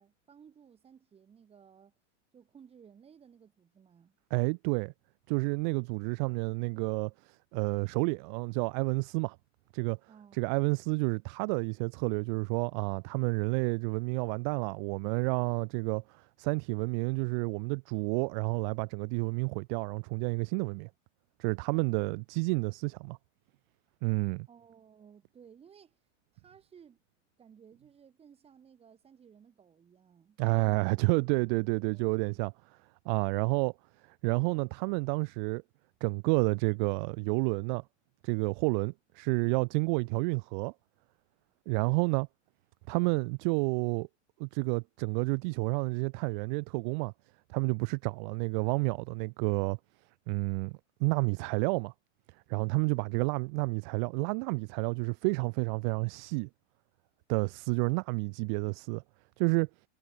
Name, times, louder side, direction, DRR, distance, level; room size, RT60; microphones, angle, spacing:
voice 1, 0.0-1.9 2.3-4.2 10.1-10.5 24.5-26.0 26.3-27.0 27.4-31.0, right 7 dB, 15° right, 3.1 m, -57 dB
voice 2, 4.3-4.9 5.3-9.4 9.7-10.0 10.3-20.9 21.4-23.2 24.0-24.5 30.4-32.5 33.1-33.7 34.2-35.6 36.0-37.8 38.2-40.7 41.7-42.3 42.9-44.1 44.4-47.1 47.5-49.8 50.3-50.7 51.0-51.9 52.5-56.5 57.3-59.0 59.4-59.7, right 33 dB, 40° right, 0.8 m, -30 dB
supercardioid pair, 155°, 36 cm